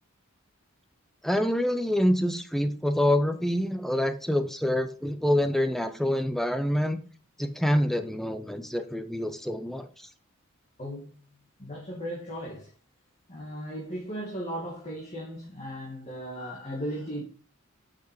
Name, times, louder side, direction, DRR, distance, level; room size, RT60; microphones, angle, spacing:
voice 1, 1.2-7.0 7.4-9.9, left 1 dB, ahead, 0.6 m, -26 dB
voice 2, 10.8-11.1 11.6-12.7 13.3-17.2, equal, 30° left, 1.7 m, -36 dB
5.9 x 5.9 x 5.1 m
head